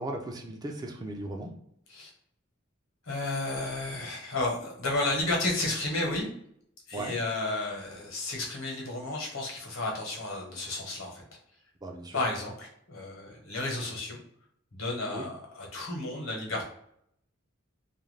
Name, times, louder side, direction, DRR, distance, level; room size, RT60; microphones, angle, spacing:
voice 1, 0.0-1.5 6.9-7.1 11.8-12.2 15.1-15.2, right 2 dB, 20° right, 2 dB, 0.4 m, -37 dB
voice 2, 3.0-6.3 6.9-11.2 12.1-14.2 14.7-16.7, left 2 dB, 80° left, 0 dB, 1.0 m, -32 dB
2.4 x 2.2 x 3.2 m, 0.69 s
head